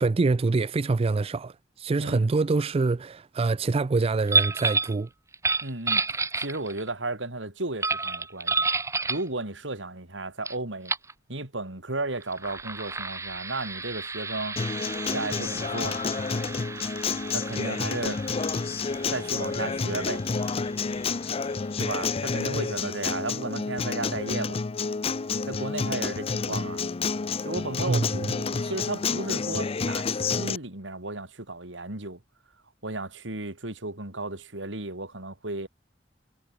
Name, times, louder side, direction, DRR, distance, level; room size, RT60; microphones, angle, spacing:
voice 1, 0.0-5.1 27.9-28.1, right 3 dB, 30° right, 0.4 m, -25 dB
sound 1, 4.3-5.0 5.3-6.9 7.8-9.3 10.4-10.5 10.8-11.1 12.2-21.5, right 3 dB, 15° right, 1.8 m, -31 dB
voice 2, 5.6-6.0 6.4-8.6 9.1-10.9 11.3-14.6 15.0-16.0 17.3-18.2 19.1-20.2 21.8-24.6 25.5-26.8 27.4-32.2 32.8-35.7, right 2 dB, 80° right, 4.2 m, -34 dB
Acoustic guitar, 14.6-30.6, left 4 dB, 30° left, 0.5 m, -29 dB
head